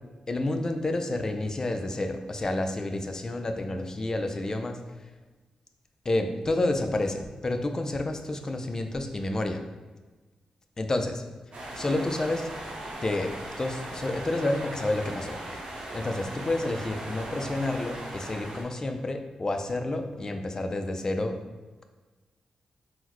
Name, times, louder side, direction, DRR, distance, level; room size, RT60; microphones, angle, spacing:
voice 1, 0.3-4.8 6.1-9.6 10.8-11.2 11.8-12.4 13.0-13.3 13.6-15.3 15.9-21.4, left 2 dB, 30° left, 6 dB, 0.3 m, -29 dB
sound 1, 11.5-18.6, right 1 dB, 70° right, 0.8 m, -38 dB
3.8 x 2.0 x 2.9 m, 1.3 s
cardioid pair, 90°, 2 cm